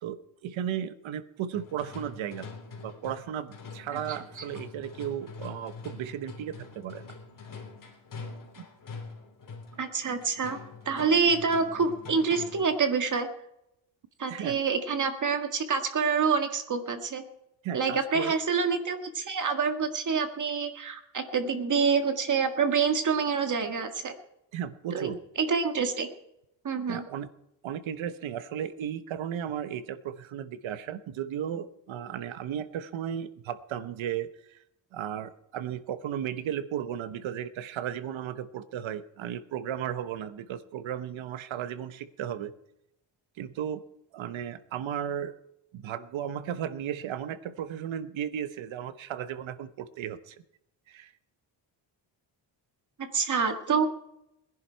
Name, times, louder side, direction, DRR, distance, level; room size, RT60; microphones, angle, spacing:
voice 1, 0.0-2.5 2.8-7.2 8.6-8.7 14.3-14.6 17.6-18.4 24.5-25.2 26.9-27.3 27.6-34.6 34.9-42.5 43.4-43.8 44.1-45.3 45.7-50.4 50.9-51.1, right 9 dB, 85° right, 12 dB, 1.1 m, -35 dB
sound 1, 1.5-12.8, left 4 dB, 45° left, 3.3 m, -44 dB
voice 2, 9.8-10.6 10.8-13.3 14.2-17.2 17.7-24.1 24.9-25.1 25.4-26.1 26.6-27.0 53.1-53.9, right 5 dB, 40° right, 6 dB, 1.8 m, -27 dB
20.5 x 11.0 x 4.5 m, 0.85 s
cardioid pair, 135°, 46 cm